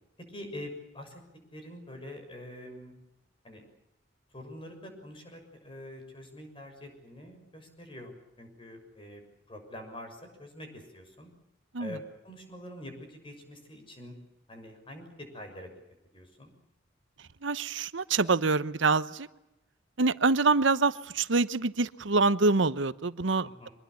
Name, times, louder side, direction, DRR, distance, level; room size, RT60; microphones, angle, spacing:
voice 1, 0.3-1.2 1.5-3.0 3.4-3.6 4.3-11.3 11.8-14.1 14.5-15.7 16.1-16.5 23.4-23.7, left 1 dB, 30° left, 5 dB, 6.7 m, -45 dB
voice 2, 17.4-19.3 20.0-23.7, right 3 dB, 85° right, 15 dB, 1.0 m, -26 dB
25.0 x 21.0 x 8.4 m, 0.90 s
head